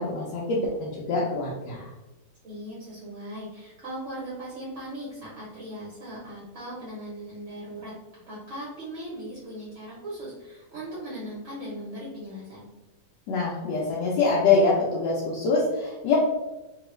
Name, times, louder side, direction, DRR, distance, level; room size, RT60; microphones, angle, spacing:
voice 1, 0.0-1.9 13.3-16.2, left 4 dB, 85° left, -4 dB, 1.3 m, -24 dB
voice 2, 2.4-12.7, right 1 dB, 50° right, -7 dB, 1.1 m, -38 dB
3.2 x 2.3 x 3.0 m, 1.1 s
omnidirectional pair, 1.9 m